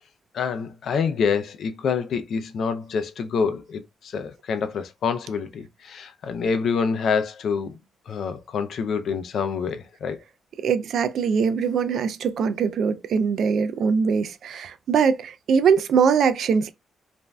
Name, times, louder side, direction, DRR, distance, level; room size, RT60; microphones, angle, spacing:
voice 1, 0.3-7.8 8.1-10.2, left 5 dB, 65° left, 0.4 m, -26 dB
voice 2, 10.6-16.7, right 6 dB, 70° right, 0.3 m, -22 dB
3.1 x 2.5 x 2.2 m
cardioid pair, 115°, 0 cm